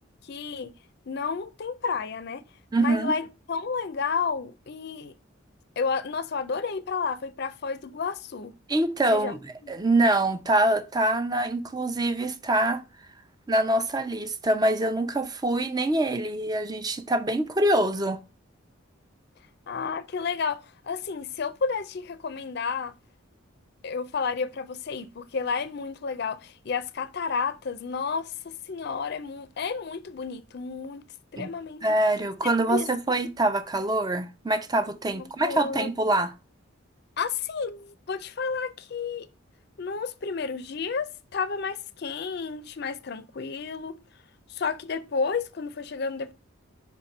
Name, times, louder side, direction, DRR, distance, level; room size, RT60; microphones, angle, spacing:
voice 1, 0.2-0.7 1.1-2.4 2.8-5.1 5.8-8.5 9.1-9.3 9.6-9.7 19.7-22.9 23.8-31.1 31.3-31.8 32.7-32.9 35.1-35.9 37.2-39.3 39.8-44.0 44.5-46.3, left 5 dB, 50° left, 0.4 m, -31 dB
voice 2, 2.7-3.1 8.7-12.8 13.5-18.2 31.4-31.5 31.8-36.3, right 1 dB, 20° right, 0.6 m, -25 dB
5.5 x 4.3 x 5.2 m
head